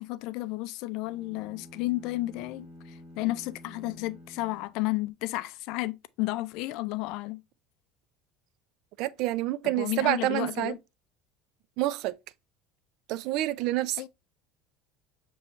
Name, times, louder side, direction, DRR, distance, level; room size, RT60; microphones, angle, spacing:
voice 1, 0.0-7.4 9.6-10.8 14.0-14.1, left 19 dB, 65° left, 0.3 m, -32 dB
sound 1, 1.0-5.4, left 1 dB, 20° right, 2.4 m, -50 dB
voice 2, 9.0-10.8 11.8-12.1 13.1-14.0, right 16 dB, 65° right, 0.4 m, -28 dB
6.8 x 3.0 x 2.6 m
supercardioid pair, 115°, 0 cm